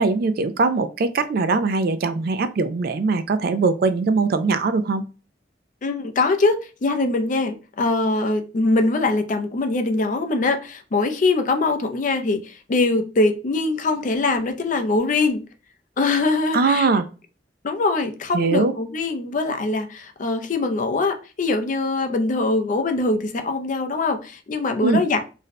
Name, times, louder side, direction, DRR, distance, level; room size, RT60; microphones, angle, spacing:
voice 1, 0.0-5.0 16.5-17.0 18.3-18.7 24.8-25.0, right 3 dB, 60° right, 0.4 m, -21 dB
voice 2, 5.8-15.4 16.0-16.9 17.6-25.2, left 3 dB, 45° left, 0.4 m, -22 dB
2.6 x 2.1 x 4.0 m
head